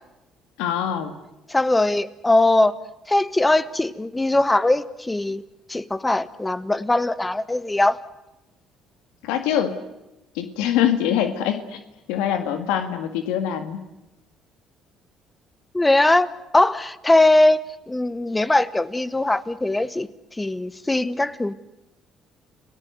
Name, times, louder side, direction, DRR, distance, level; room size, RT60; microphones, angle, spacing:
voice 1, 0.6-1.1 9.2-9.7 10.4-11.8 12.1-13.8, left 10 dB, 85° left, 9 dB, 1.8 m, -24 dB
voice 2, 1.5-2.7 3.1-5.4 5.7-8.0 15.7-20.1 20.4-21.5, left 2 dB, 15° left, 15 dB, 1.5 m, -20 dB
30.0 x 18.5 x 8.0 m, 0.95 s
supercardioid pair, 70°, 0 cm